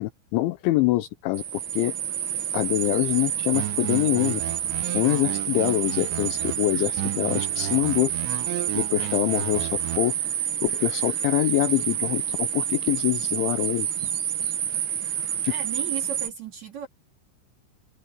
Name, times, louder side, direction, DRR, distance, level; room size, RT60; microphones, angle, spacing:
voice 1, 0.0-1.9 2.5-4.4 4.9-8.1 8.7-10.1 10.6-13.9 15.4-15.5, left 17 dB, 80° left, 2.9 m, -25 dB
sound 1, 1.3-16.3, right 9 dB, 70° right, 1.8 m, -28 dB
sound 2, 3.5-6.6 7.0-10.0, right 18 dB, 85° right, 2.6 m, -34 dB
voice 2, 15.5-16.9, right 8 dB, 40° right, 3.6 m, -35 dB
open air
omnidirectional pair, 5.9 m